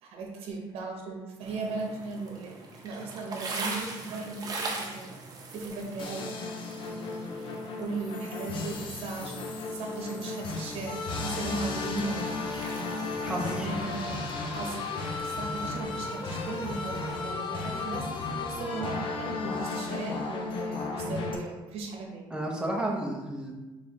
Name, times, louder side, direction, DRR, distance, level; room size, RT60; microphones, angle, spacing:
voice 1, 0.0-2.6 2.8-5.1 5.5-6.3 6.8-12.3 13.4-14.9 15.2-22.3, right 3 dB, 70° right, 1 dB, 1.0 m, -37 dB
sound 1, 1.4-17.2, right 3 dB, 40° right, 0.8 m, -42 dB
sound 2, 6.0-21.3, left 3 dB, 50° left, 0.7 m, -34 dB
voice 2, 13.2-13.8 22.3-23.5, right 1 dB, 10° right, -2 dB, 0.8 m, -32 dB
3.5 x 3.5 x 4.2 m, 1.1 s
cardioid pair, 140°, 10 cm